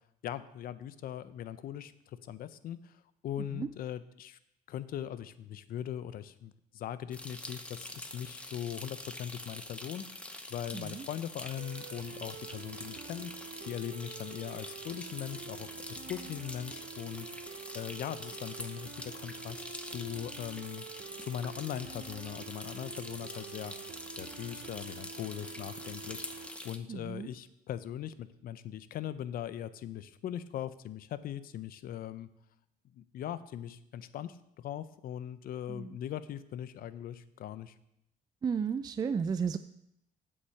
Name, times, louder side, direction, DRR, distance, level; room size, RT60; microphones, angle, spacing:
voice 1, 0.2-4.4 4.7-17.3 17.7-20.8 21.2-32.3 32.9-37.7, left 10 dB, 60° left, 13 dB, 0.6 m, -40 dB
sound 1, 7.1-26.8, left 1 dB, 5° left, 0.8 m, -45 dB
voice 2, 10.7-11.0 26.9-27.3 35.7-35.9 38.4-39.6, right 6 dB, 25° right, 11 dB, 0.3 m, -33 dB
sound 2, 11.6-26.5, right 9 dB, 60° right, 0.7 m, -48 dB
8.3 x 5.5 x 7.0 m, 0.79 s
cardioid pair, 110°, 17 cm